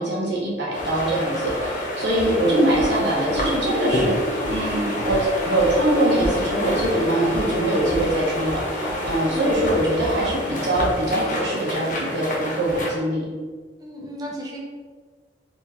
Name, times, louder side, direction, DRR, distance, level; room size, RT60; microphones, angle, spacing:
voice 1, 0.0-4.2 4.5-5.2 5.4-13.3, right 1 dB, 90° right, -4 dB, 1.2 m, -23 dB
sound 1, 0.7-13.0, left 1 dB, 45° left, 1.0 m, -28 dB
sound 2, 4.2-7.4, right 2 dB, 50° right, 0.8 m, -38 dB
voice 2, 13.8-14.6, equal, 20° right, -3 dB, 0.6 m, -35 dB
4.4 x 3.1 x 3.0 m, 1.5 s
head